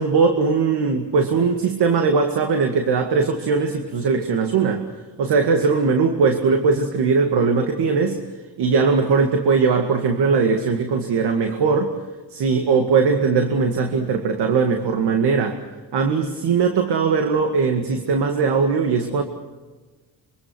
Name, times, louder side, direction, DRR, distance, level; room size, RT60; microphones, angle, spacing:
voice 1, 0.0-4.8 5.2-8.2 8.6-11.9 12.3-15.6 15.9-19.2, right 5 dB, 65° right, 5 dB, 2.2 m, -20 dB
26.0 x 24.5 x 6.2 m, 1.3 s
cardioid pair, 75°, 43 cm